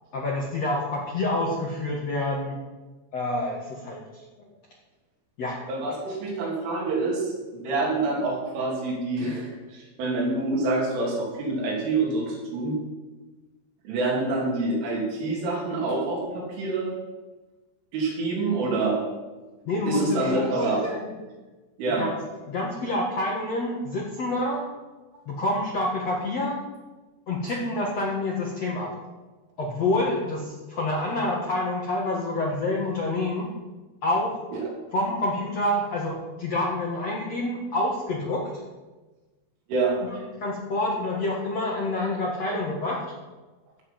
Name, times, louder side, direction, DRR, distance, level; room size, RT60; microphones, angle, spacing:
voice 1, 0.1-2.6 3.1-4.2 5.4-5.6 19.7-21.1 21.9-22.2 22.5-24.7 25.3-26.6 27.3-29.0 29.6-33.5 34.0-34.4 34.9-38.5 40.0-43.0, left 2 dB, 60° left, -3 dB, 1.8 m, -27 dB
voice 2, 5.7-7.3 7.5-12.8 13.9-16.9 17.9-19.0 19.9-20.9 21.8-22.1 39.7-40.0, right 3 dB, 85° right, -3 dB, 5.7 m, -26 dB
15.5 x 7.4 x 5.9 m, 1.2 s
omnidirectional pair, 5.4 m